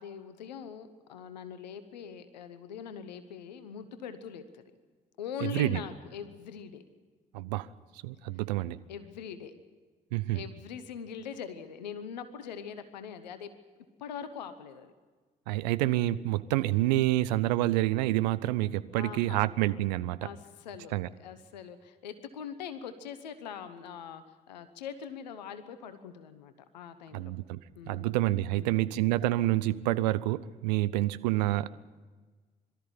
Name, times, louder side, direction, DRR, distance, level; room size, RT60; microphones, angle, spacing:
voice 1, 0.0-4.6 5.2-6.8 8.9-9.5 10.3-13.5 14.0-14.9 19.0-19.4 20.2-27.3 27.7-28.2 28.5-28.9, left 7 dB, 85° left, 11 dB, 1.0 m, -42 dB
voice 2, 5.4-5.8 7.3-7.7 8.0-8.8 10.1-10.4 15.5-20.3 20.9-21.1 27.1-27.6 27.9-31.7, right 16 dB, 80° right, 16 dB, 0.6 m, -28 dB
22.5 x 13.5 x 9.8 m, 1.4 s
hypercardioid pair, 45°, 21 cm